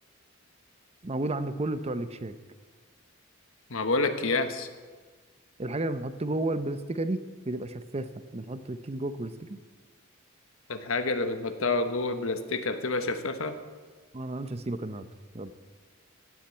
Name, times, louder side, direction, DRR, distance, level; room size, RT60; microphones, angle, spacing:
voice 1, 1.0-2.3 5.6-7.2 7.5-9.6 14.1-15.1 15.3-15.5, right 2 dB, 30° right, 12 dB, 0.7 m, -32 dB
voice 2, 3.7-4.7 10.7-13.6, left 3 dB, 70° left, 9 dB, 1.1 m, -28 dB
16.0 x 7.5 x 8.7 m, 1.4 s
head